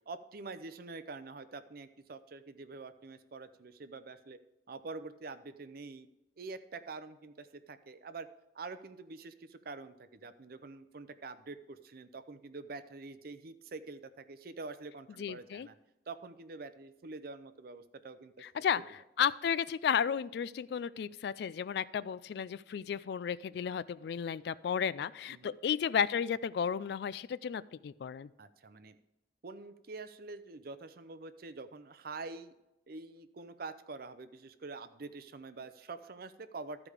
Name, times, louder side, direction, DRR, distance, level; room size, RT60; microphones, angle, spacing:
voice 1, 0.1-4.4 4.7-6.1 6.4-8.3 8.5-15.7 16.1-18.4 18.8-18.9 25.3-25.6 28.4-29.0 29.4-32.5 32.9-36.8, right 3 dB, 55° right, 12 dB, 0.6 m, -46 dB
voice 2, 15.2-15.7 18.4-18.8 19.2-28.3, left 7 dB, 60° left, 18 dB, 0.3 m, -33 dB
13.5 x 4.9 x 4.9 m, 0.92 s
head